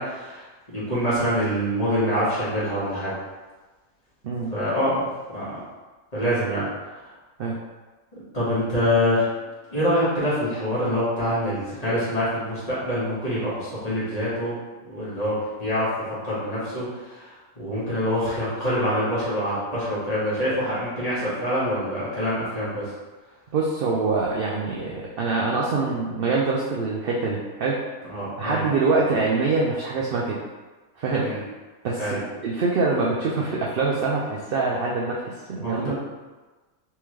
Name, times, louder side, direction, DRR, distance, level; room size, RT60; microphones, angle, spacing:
voice 1, 0.0-3.1 4.5-5.4 6.1-6.7 8.3-9.3 9.7-14.6 14.8-15.9 16.2-22.9 28.1-28.6 31.2-31.4 32.0-32.2 35.6-36.0, equal, 30° left, -10 dB, 1.5 m, -25 dB
voice 2, 23.5-27.8 28.4-30.4 31.0-31.3 31.8-36.0, right 3 dB, 65° right, -3 dB, 0.5 m, -24 dB
3.5 x 3.4 x 3.1 m, 1.3 s
omnidirectional pair, 1.5 m